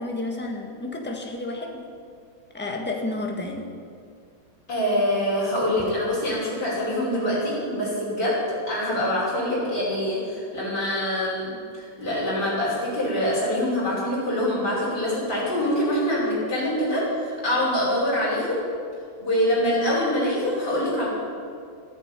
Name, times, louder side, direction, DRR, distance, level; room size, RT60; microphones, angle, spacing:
voice 1, 0.0-1.8 2.5-3.7, left 2 dB, 5° left, 1 dB, 1.5 m, -31 dB
voice 2, 4.7-8.4 8.7-11.5 11.8-18.6 19.2-21.1, left 1 dB, 55° left, -8 dB, 6.2 m, -24 dB
14.0 x 11.0 x 9.1 m, 2.3 s
omnidirectional pair, 2.2 m